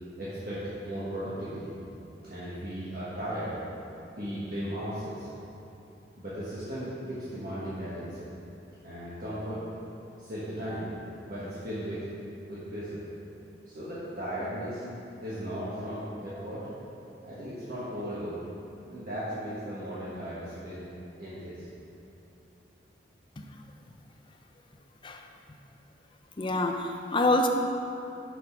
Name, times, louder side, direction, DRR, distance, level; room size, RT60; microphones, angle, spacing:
voice 1, 0.2-1.7 2.3-3.6 4.2-5.3 6.2-8.3 8.8-9.6 10.2-10.9 11.3-12.0 12.5-13.0 13.7-18.4 18.9-20.8 21.2-21.7, equal, 50° right, -11 dB, 1.4 m, -36 dB
voice 2, 26.4-27.5, left 2 dB, 25° left, 4 dB, 0.4 m, -26 dB
6.1 x 5.2 x 5.7 m, 2.8 s
head